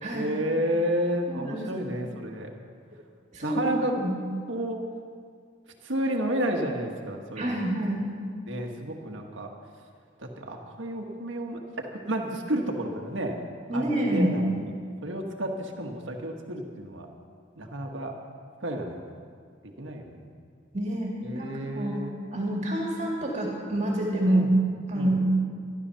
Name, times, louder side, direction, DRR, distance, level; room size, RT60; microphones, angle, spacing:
voice 1, 0.1-2.5 3.4-4.0 4.5-4.8 5.8-7.6 8.5-9.5 10.2-13.4 13.7-14.7 15.0-17.1 17.6-18.2 18.6-19.2 19.8-20.3 21.2-22.2 24.3-24.5 24.9-25.1, right 1 dB, 75° right, 2 dB, 1.4 m, -31 dB
voice 2, 1.3-1.7 3.3-4.2 7.4-8.0 13.7-14.3 20.7-22.0 22.3-24.4 24.9-25.2, right 1 dB, 35° right, -2 dB, 2.1 m, -27 dB
13.0 x 12.0 x 5.7 m, 2.1 s
head